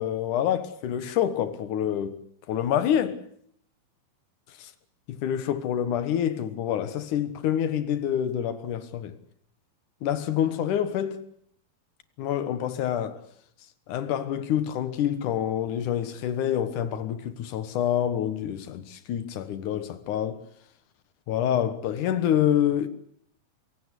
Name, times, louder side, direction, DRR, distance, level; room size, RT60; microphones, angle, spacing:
voice 1, 0.0-2.2 2.5-3.2 4.6-4.7 5.1-9.2 10.0-11.2 12.2-13.2 13.9-20.4 21.3-22.9, left 10 dB, 65° left, 2.5 m, -27 dB
25.0 x 17.0 x 8.2 m
omnidirectional pair, 4.3 m